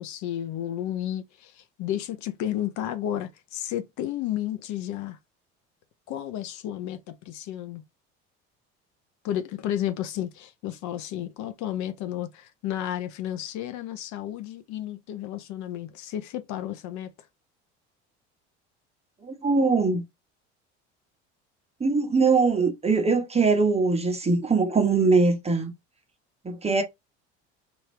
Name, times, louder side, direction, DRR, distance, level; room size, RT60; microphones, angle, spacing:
voice 1, 0.0-5.2 6.1-7.8 9.2-17.1, left 11 dB, 60° left, 0.7 m, -32 dB
voice 2, 19.2-20.0 21.8-25.7 26.4-26.8, right 4 dB, 20° right, 1.0 m, -22 dB
2.9 x 2.6 x 3.2 m
hypercardioid pair, 80°, 33 cm